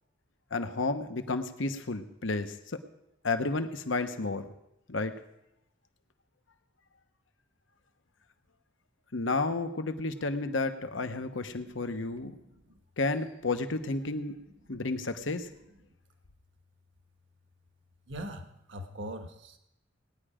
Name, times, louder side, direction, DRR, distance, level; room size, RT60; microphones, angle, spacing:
voice 1, 0.5-2.5 3.2-4.5 4.9-5.2 9.1-12.3 13.0-14.3 14.7-15.5, left 3 dB, 70° left, 9 dB, 1.0 m, -31 dB
voice 2, 12.3-12.8 14.7-14.8 15.2-15.3 18.1-19.6, right 1 dB, 70° right, 6 dB, 1.4 m, -42 dB
19.0 x 10.0 x 5.0 m, 0.88 s
head